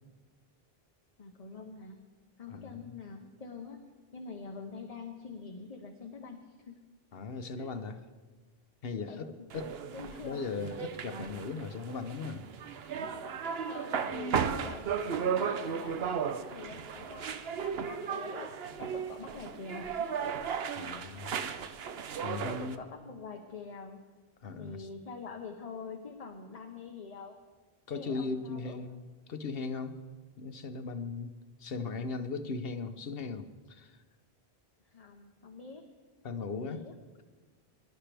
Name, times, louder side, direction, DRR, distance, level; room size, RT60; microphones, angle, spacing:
voice 1, 1.2-2.1 2.4-6.8 7.6-7.7 9.1-9.4 9.9-10.5 13.3-20.4 22.5-24.1 24.6-27.4 27.9-28.9 34.8-35.8 36.5-36.9, left 5 dB, 40° left, 3 dB, 1.0 m, -46 dB
voice 2, 2.5-2.9 7.1-8.0 8.8-9.7 10.2-12.4 20.8-21.4 22.2-22.8 24.4-24.9 27.9-29.0 29.3-30.0 30.4-31.3 31.6-34.0 36.2-36.8, left 4 dB, 70° left, 9 dB, 1.0 m, -38 dB
sound 1, 9.5-22.8, right 7 dB, 75° right, 1.0 m, -35 dB
23.5 x 12.0 x 3.4 m, 1.3 s
omnidirectional pair, 1.0 m